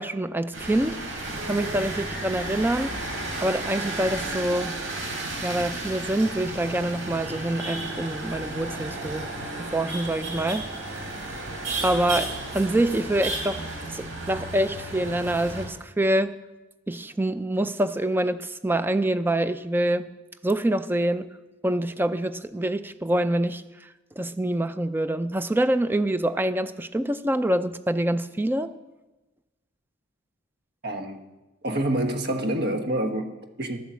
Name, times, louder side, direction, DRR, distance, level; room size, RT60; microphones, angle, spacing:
voice 1, 0.0-3.0 3.4-4.8 5.4-9.3 9.7-11.1 11.8-16.4 16.9-20.1 20.4-21.3 21.6-23.9 24.2-28.7, right 1 dB, 10° right, 12 dB, 0.4 m, -26 dB
sound 1, 0.5-15.7, right 2 dB, 75° right, 3.4 m, -33 dB
voice 2, 30.8-31.2 31.6-33.8, right 1 dB, 55° right, 6 dB, 1.2 m, -27 dB
11.5 x 7.2 x 7.3 m, 1.1 s
head